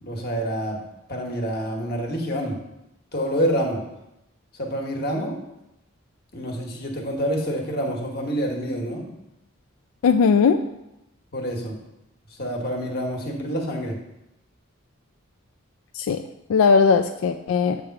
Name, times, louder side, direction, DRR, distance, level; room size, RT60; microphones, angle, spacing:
voice 1, 0.0-0.8 1.1-2.6 3.1-3.8 4.6-5.4 6.3-9.0 11.3-11.8 12.4-14.0, equal, 50° left, 1 dB, 1.2 m, -27 dB
voice 2, 10.0-10.6 15.9-16.2 16.5-17.8, left 5 dB, 85° left, 7 dB, 0.3 m, -18 dB
7.6 x 3.4 x 5.8 m, 0.89 s
head